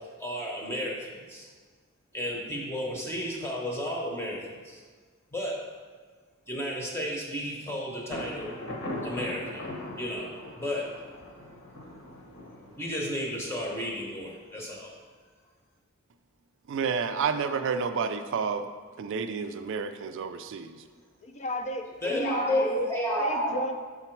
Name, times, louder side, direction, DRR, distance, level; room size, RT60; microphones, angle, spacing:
voice 1, 0.0-1.5 2.1-4.8 5.3-5.7 6.5-8.5 9.0-9.7 10.0-11.0 12.8-14.9 22.0-23.6, equal, 10° left, -2 dB, 0.8 m, -32 dB
Thunder, 8.1-13.8, left 1 dB, 55° left, 1.1 m, -40 dB
voice 2, 16.7-18.7 19.0-20.8, right 5 dB, 55° right, 9 dB, 0.3 m, -30 dB
voice 3, 21.2-22.9 23.2-23.7, left 1 dB, 30° left, 5 dB, 0.5 m, -34 dB
6.9 x 3.8 x 4.5 m, 1.5 s
head